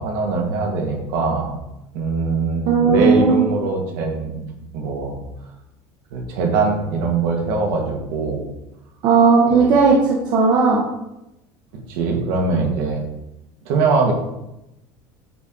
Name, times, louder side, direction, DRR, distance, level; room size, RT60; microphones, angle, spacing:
voice 1, 0.0-1.5 1.9-4.5 4.7-5.2 6.1-8.4 9.5-9.7 11.9-13.0 13.7-14.1, right 4 dB, 70° right, 1 dB, 1.8 m, -22 dB
voice 2, 2.7-3.4 9.0-10.8, right 4 dB, 40° right, -1 dB, 1.0 m, -15 dB
9.0 x 4.5 x 3.8 m, 0.90 s
cardioid pair, 180°, 10 cm